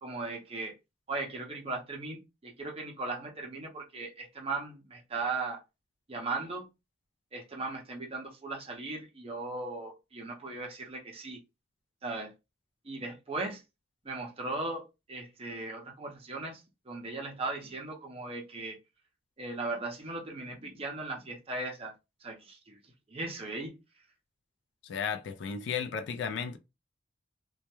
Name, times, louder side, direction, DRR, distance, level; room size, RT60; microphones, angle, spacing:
voice 1, 0.0-0.7 1.1-5.6 6.1-6.7 7.3-11.4 12.0-12.3 12.8-13.6 14.0-18.8 19.4-21.9 22.2-22.8 23.1-23.7, right 3 dB, 30° right, 0.5 m, -38 dB
voice 2, 24.8-26.6, left 6 dB, 60° left, 0.3 m, -34 dB
2.2 x 2.1 x 2.9 m
head